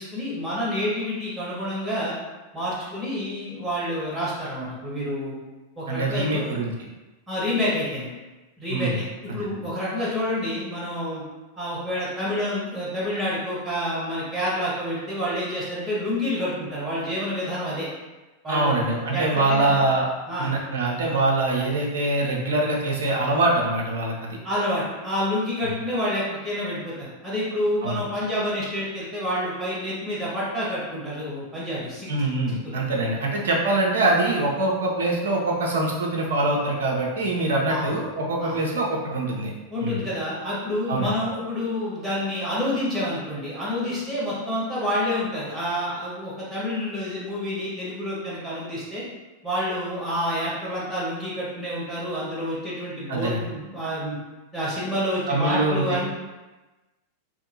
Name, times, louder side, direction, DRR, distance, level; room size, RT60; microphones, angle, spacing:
voice 1, 0.0-2.1 2.5-5.3 5.8-6.6 7.3-8.1 8.6-11.2 11.6-17.9 18.4-18.8 19.1-19.7 20.3-20.5 24.4-32.3 32.6-32.8 37.7-37.9 38.4-38.5 39.7-49.0 49.4-54.2 54.5-56.1, left 1 dB, 10° right, -8 dB, 1.2 m, -28 dB
voice 2, 5.9-6.7 8.7-9.0 9.3-9.5 18.5-20.1 20.4-24.4 25.6-25.7 27.8-28.0 32.1-39.5 39.8-40.0 40.9-41.1 53.1-53.4 55.3-56.0, right 2 dB, 60° right, -1 dB, 0.5 m, -24 dB
2.7 x 2.6 x 2.6 m, 1.1 s
figure-of-eight pair, 90°, 0 cm